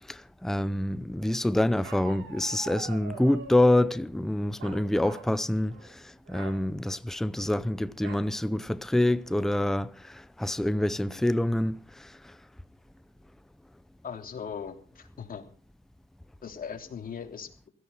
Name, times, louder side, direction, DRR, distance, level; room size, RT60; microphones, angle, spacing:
voice 1, 0.1-12.3, left 1 dB, ahead, 0.6 m, -27 dB
Bark, 1.8-3.9 4.6-5.3 5.7-5.9 6.3-6.6 8.0-8.3 8.8-8.9 9.3-9.7, right 5 dB, 85° right, 3.9 m, -44 dB
voice 2, 14.0-15.4 16.4-17.7, left 7 dB, 45° left, 3.3 m, -39 dB
16.5 x 14.0 x 5.5 m
cardioid pair, 90°, 20 cm